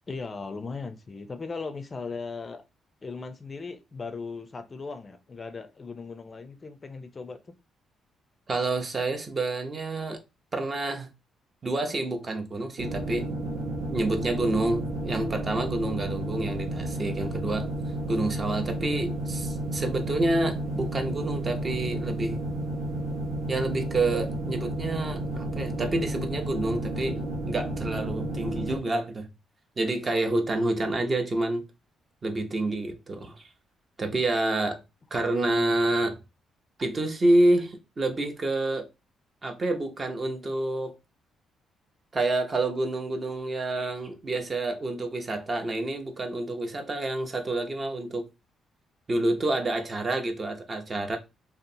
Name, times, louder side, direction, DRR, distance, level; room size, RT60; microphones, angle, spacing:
voice 1, 0.1-2.6 3.0-7.5 28.2-28.6 35.2-35.8, left 4 dB, 30° left, 0.4 m, -38 dB
voice 2, 8.5-10.2 10.5-11.1 11.6-13.3 13.9-17.7 18.1-22.4 23.5-29.3 29.8-31.6 32.2-33.5 34.0-34.8 35.1-36.2 36.8-38.9 39.4-41.0 42.1-48.3 49.1-51.2, right 2 dB, 35° right, 0.6 m, -28 dB
sound 1, 12.8-28.8, right 1 dB, 80° right, 0.7 m, -32 dB
2.8 x 2.0 x 2.6 m
cardioid pair, 90°, 0 cm